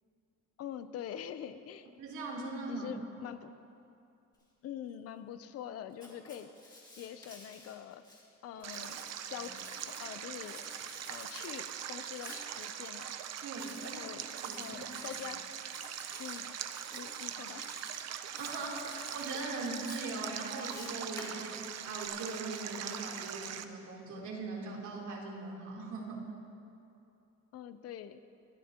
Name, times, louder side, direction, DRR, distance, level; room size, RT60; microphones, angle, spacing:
voice 1, 0.6-1.9 2.7-3.5 4.6-8.0 8.4-9.0 9.3-10.6 11.1-13.1 13.8-14.3 14.5-15.4 16.2-16.6 16.9-17.7 27.5-28.2, left 10 dB, 55° left, 10 dB, 0.6 m, -45 dB
voice 2, 2.0-2.9 9.4-9.5 13.4-14.0 14.4-14.7 15.1-15.2 18.4-26.2, right 3 dB, 75° right, -3 dB, 3.4 m, -40 dB
Writing, 5.9-8.2 8.6-10.1 10.4-11.5 12.1-12.4 13.5-14.0 14.3-15.3 15.7-16.4 16.7-17.3 17.6-18.0 18.3-19.4 19.8-22.1, left 1 dB, 15° left, 2.4 m, -51 dB
Stream, 8.6-23.6, right 9 dB, 60° right, 0.7 m, -42 dB
24.5 x 14.0 x 2.9 m, 2.7 s
cardioid pair, 170°, 29 cm